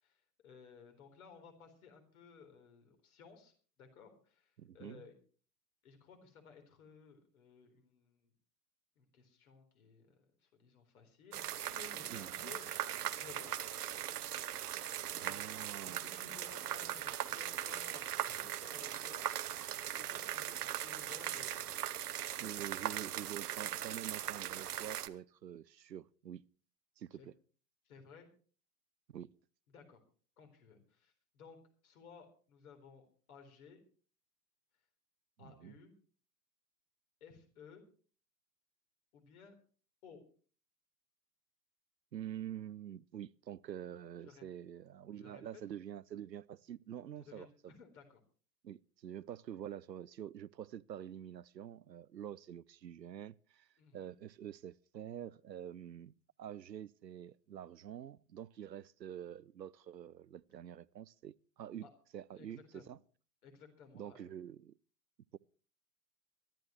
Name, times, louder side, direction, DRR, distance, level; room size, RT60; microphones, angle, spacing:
voice 1, 0.0-3.5 3.8-5.1 5.8-8.3 9.0-13.6 15.3-15.4 15.8-19.3 19.6-21.7 27.1-27.3 27.8-28.3 29.7-30.0 30.4-33.8 35.4-35.9 37.2-37.9 39.1-39.5 40.0-40.2 44.2-44.4 45.1-45.4 47.2-48.2 53.8-54.1 61.8-61.9 62.3-63.0 63.4-64.3, left 6 dB, 55° left, 4.1 m, -58 dB
voice 2, 4.6-5.0 12.1-12.5 15.1-16.0 22.4-26.4 27.0-27.3 29.1-29.3 35.4-35.7 42.1-47.7 48.6-56.1 56.4-61.9 62.1-63.0 63.9-64.7 65.3-65.4, right 10 dB, 85° right, 0.6 m, -47 dB
sound 1, 11.3-25.1, right 11 dB, 65° right, 1.0 m, -40 dB
23.5 x 12.0 x 3.1 m
figure-of-eight pair, 100°, 49 cm